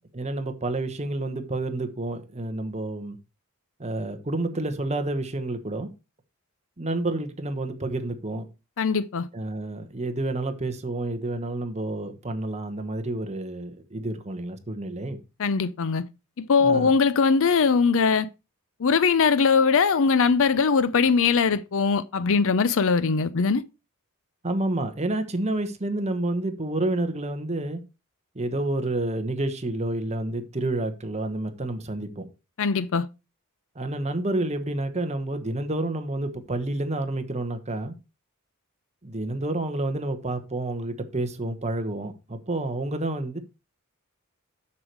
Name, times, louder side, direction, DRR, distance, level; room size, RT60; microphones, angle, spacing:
voice 1, 0.1-3.2 3.8-5.9 6.8-8.4 9.3-15.2 16.6-16.9 24.4-27.8 28.3-32.2 33.8-37.9 39.0-43.4, right 2 dB, 30° right, 1.2 m, -29 dB
voice 2, 8.8-9.3 15.4-16.0 16.5-18.3 18.8-23.6 32.6-33.1, left 5 dB, 60° left, 0.5 m, -21 dB
7.2 x 6.8 x 4.6 m
head